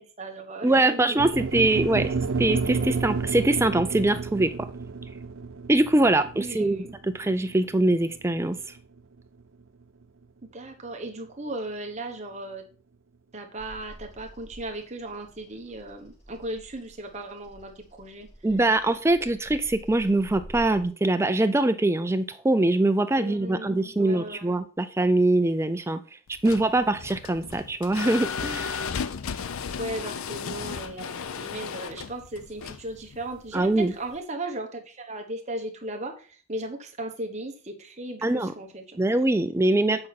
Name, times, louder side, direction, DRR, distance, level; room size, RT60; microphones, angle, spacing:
voice 1, 0.0-1.2 1.6-1.8 6.3-6.9 10.5-12.6 13.3-18.3 23.2-24.5 26.4-27.0 29.8-39.0 39.8-40.1, right 1 dB, 30° right, 3 dB, 1.2 m, -37 dB
voice 2, 0.6-4.5 5.7-8.6 18.4-26.0 26.4-28.8 33.5-33.9 38.2-38.5 39.0-40.1, right 2 dB, 10° right, 10 dB, 0.4 m, -23 dB
sound 1, 1.2-9.4, right 4 dB, 65° right, 0.5 m, -31 dB
Bird vocalization bird call bird song, 13.6-20.8, right 1 dB, 30° left, 2.8 m, -48 dB
sound 2, 26.3-34.2, left 6 dB, 80° left, 0.5 m, -35 dB
8.7 x 5.3 x 4.2 m, 0.38 s
head